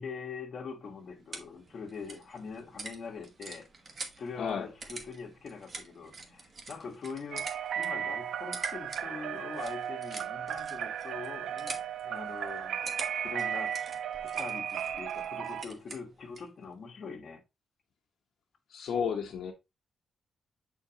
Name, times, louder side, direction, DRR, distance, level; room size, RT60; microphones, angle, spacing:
voice 1, 0.0-3.7 4.2-13.8 14.2-17.4, left 5 dB, 45° left, 1.4 m, -43 dB
sound 1, 0.7-16.6, right 3 dB, 35° right, 1.2 m, -46 dB
voice 2, 4.4-4.7 18.7-19.5, left 7 dB, 70° left, 1.1 m, -32 dB
sound 2, 7.3-15.6, right 9 dB, 80° right, 0.3 m, -35 dB
7.4 x 4.5 x 2.9 m
wide cardioid pair, 145°, 0 cm